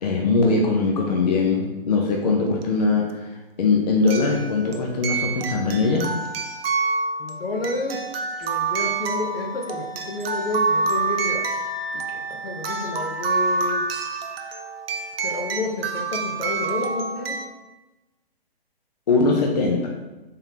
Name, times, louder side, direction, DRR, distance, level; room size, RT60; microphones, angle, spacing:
voice 1, 0.0-6.2 19.1-19.9, left 3 dB, 45° left, 0 dB, 0.4 m, -21 dB
sound 1, 2.6-2.7 4.1-17.5, right 4 dB, 70° right, 0.6 m, -27 dB
voice 2, 7.2-8.1 8.4-11.5 11.9-13.9 15.2-17.4, left 2 dB, 70° left, 2 dB, 0.8 m, -30 dB
sound 2, 8.1-14.9, left 1 dB, 20° right, 0.7 m, -39 dB
3.6 x 3.6 x 2.8 m, 1.1 s
hypercardioid pair, 165°, 30 cm